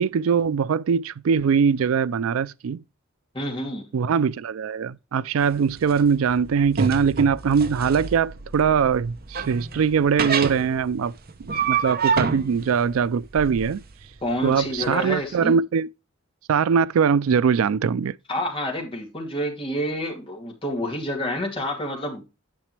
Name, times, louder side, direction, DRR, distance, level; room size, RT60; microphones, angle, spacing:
voice 1, 0.0-2.8 3.9-11.1 11.4-13.8 14.4-15.9 16.5-18.1, right 6 dB, 90° right, 0.4 m, -22 dB
voice 2, 3.3-3.9 14.2-15.6 18.3-22.2, equal, 25° left, 2.7 m, -28 dB
sound 1, 5.4-14.9, right 6 dB, 45° right, 0.8 m, -28 dB
10.5 x 5.9 x 3.2 m
head